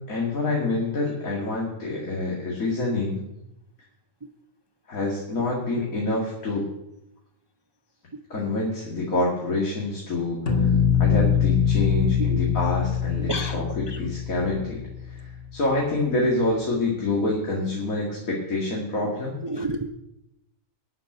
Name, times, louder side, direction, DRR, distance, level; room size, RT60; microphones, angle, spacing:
voice 1, 0.1-3.2 4.9-6.7 8.3-10.7 11.0-13.6 14.0-14.8 15.1-15.2 15.5-19.4, left 2 dB, 85° left, -3 dB, 2.5 m, -26 dB
sound 1, 10.5-15.4, left 7 dB, 45° left, 1.8 m, -23 dB
voice 2, 11.9-12.5 13.2-14.0 19.4-19.9, right 1 dB, 40° right, 6 dB, 0.3 m, -32 dB
12.0 x 5.9 x 9.1 m, 0.87 s
omnidirectional pair, 1.4 m